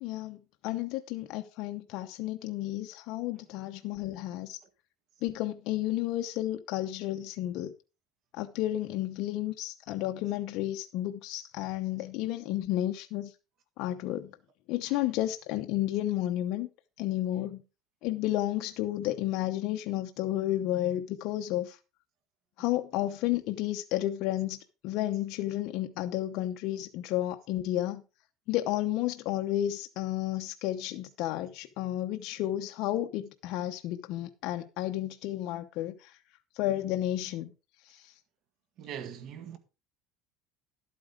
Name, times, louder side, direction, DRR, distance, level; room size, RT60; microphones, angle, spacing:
voice 1, 0.0-4.6 5.2-7.7 8.3-13.3 13.8-14.4 14.7-16.7 17.0-17.6 18.0-21.8 22.6-28.0 28.5-36.2 36.5-37.5 37.8-38.1, left 14 dB, 60° left, 0.8 m, -32 dB
voice 2, 38.8-39.6, right 9 dB, 50° right, 1.9 m, -41 dB
12.0 x 8.6 x 3.8 m
cardioid pair, 135°, 0 cm